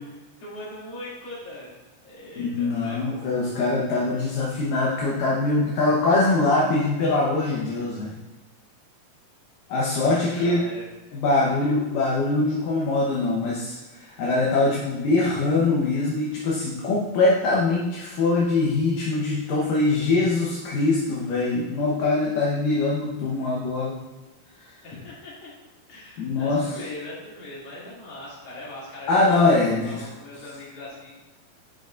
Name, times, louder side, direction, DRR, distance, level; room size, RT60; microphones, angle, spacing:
voice 1, 0.4-3.6 9.7-11.7 12.5-12.6 24.8-25.5 25.9-31.1, left 1 dB, 45° left, -8 dB, 3.5 m, -41 dB
voice 2, 2.4-8.2 9.7-10.6 11.1-23.9 24.6-24.7 26.2-26.6 29.1-30.0, left 2 dB, 70° left, -5 dB, 2.6 m, -23 dB
11.0 x 6.9 x 2.5 m, 1.1 s
omnidirectional pair, 4.3 m